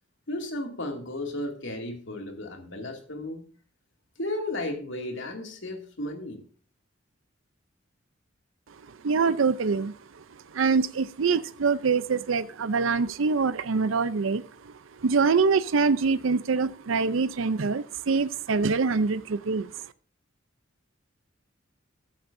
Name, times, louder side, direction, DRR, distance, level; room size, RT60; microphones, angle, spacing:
voice 1, 0.3-3.4 4.2-6.4, left 1 dB, 65° left, 3 dB, 2.5 m, -34 dB
voice 2, 8.9-10.2 10.5-19.9, right 4 dB, 75° right, 14 dB, 0.5 m, -25 dB
14.0 x 12.0 x 2.6 m, 0.43 s
head